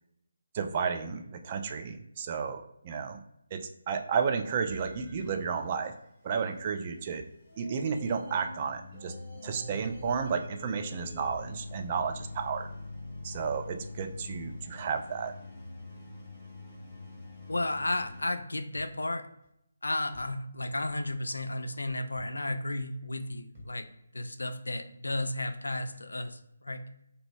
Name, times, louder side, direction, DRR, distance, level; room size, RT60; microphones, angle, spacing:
voice 1, 0.5-3.2 3.5-5.9 6.2-7.2 7.6-9.1 9.4-12.7 13.2-15.3, right 6 dB, 30° right, 6 dB, 0.3 m, -32 dB
sound 1, 4.7-18.2 18.7-18.8 19.4-19.5 20.1-20.2 20.8-20.9 22.1-22.3 22.9-23.0 23.5-23.7, left 2 dB, 5° right, 1.3 m, -44 dB
voice 2, 17.4-19.3 19.8-23.9 24.1-26.8, left 2 dB, 75° left, 8 dB, 0.4 m, -33 dB
3.0 x 2.6 x 3.0 m, 0.79 s
figure-of-eight pair, 150°, 0 cm